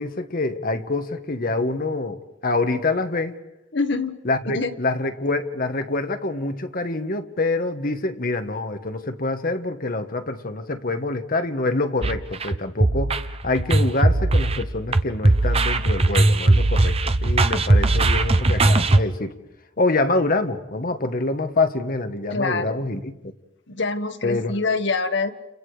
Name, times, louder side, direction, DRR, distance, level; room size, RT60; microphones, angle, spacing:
voice 1, 0.0-3.4 4.2-13.2 13.4-19.3 19.8-23.3 24.2-24.5, left 2 dB, 50° left, 7 dB, 1.6 m, -26 dB
voice 2, 3.7-4.2 4.5-4.7 22.3-22.8 23.7-25.3, left 3 dB, 65° left, 7 dB, 1.5 m, -25 dB
sound 1, 12.0-19.0, right 2 dB, 30° right, 0.9 m, -19 dB
30.0 x 30.0 x 5.0 m, 0.94 s
head